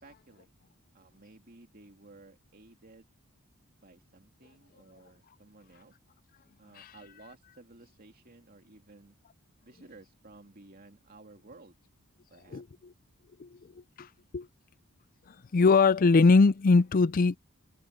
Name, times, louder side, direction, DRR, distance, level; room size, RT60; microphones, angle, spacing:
voice 1, 0.0-0.5 0.9-3.1 3.8-5.9 6.6-9.2 9.6-11.8 12.3-12.6, right 2 dB, 45° right, 2.6 m, -55 dB
voice 2, 15.5-17.4, left 4 dB, 40° left, 0.4 m, -21 dB
head